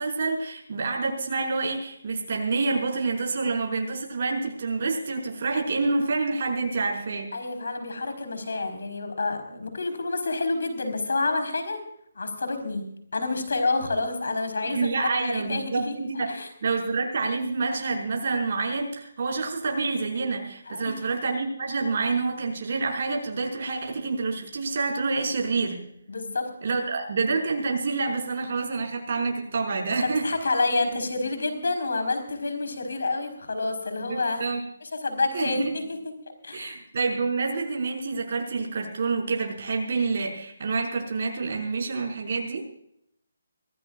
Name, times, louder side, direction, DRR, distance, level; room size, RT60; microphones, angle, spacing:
voice 1, 0.0-7.3 14.6-25.8 26.6-30.3 34.0-34.6 35.3-35.7 36.5-42.6, right 4 dB, 45° right, 1 dB, 5.4 m, -28 dB
voice 2, 7.3-11.8 12.1-12.9 13.1-16.0 16.3-16.5 20.7-21.0 26.1-26.5 30.0-34.5 35.0-36.0 36.4-36.8, left 3 dB, 80° left, 7 dB, 4.6 m, -28 dB
25.0 x 15.5 x 2.5 m, 0.72 s
hypercardioid pair, 165°, 0 cm